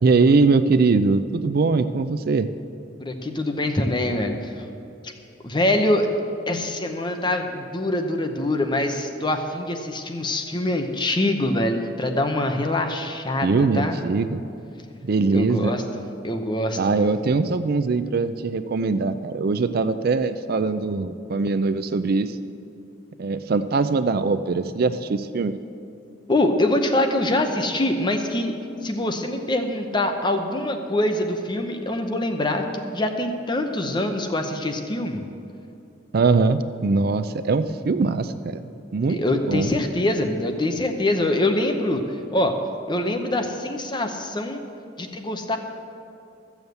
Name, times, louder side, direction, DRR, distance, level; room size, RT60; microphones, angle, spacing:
voice 1, 0.0-2.5 13.4-14.4 15.0-15.7 16.8-22.4 23.2-25.5 36.1-38.6 38.9-39.2 39.5-39.7, right 4 dB, 55° right, 11 dB, 0.4 m, -21 dB
voice 2, 3.0-4.3 5.4-6.1 6.5-14.0 15.3-15.8 16.2-17.1 26.3-28.5 28.8-32.6 32.9-35.2 39.1-42.0 42.3-42.6 42.9-44.6 45.0-45.6, left 1 dB, 25° left, 4 dB, 0.8 m, -24 dB
14.0 x 7.2 x 8.0 m, 2.6 s
head